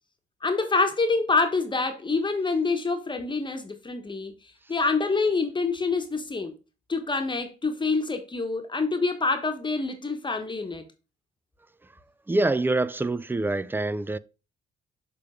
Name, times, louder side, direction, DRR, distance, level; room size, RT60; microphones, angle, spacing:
voice 1, 0.4-4.3 4.7-6.5 6.9-10.9, left 3 dB, 25° left, 1.1 m, -26 dB
voice 2, 12.3-14.2, right 2 dB, 10° right, 0.3 m, -25 dB
6.7 x 3.5 x 4.9 m
cardioid pair, 90°, 20 cm